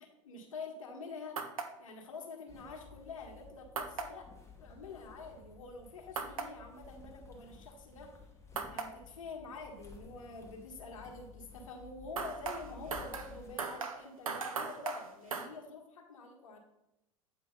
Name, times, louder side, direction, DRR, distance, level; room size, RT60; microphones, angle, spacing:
voice 1, 0.0-1.5 1.8-4.3 4.6-8.2 8.7-16.6, left 3 dB, 75° left, 2 dB, 1.4 m, -47 dB
sound 1, 1.4-1.7 3.8-4.1 6.2-6.5 8.6-8.9 12.2-15.5, right 5 dB, 85° right, 0.6 m, -38 dB
sound 2, 2.5-13.5, left 5 dB, 15° left, 1.2 m, -55 dB
8.4 x 3.2 x 5.2 m, 0.89 s
figure-of-eight pair, 80°, 17 cm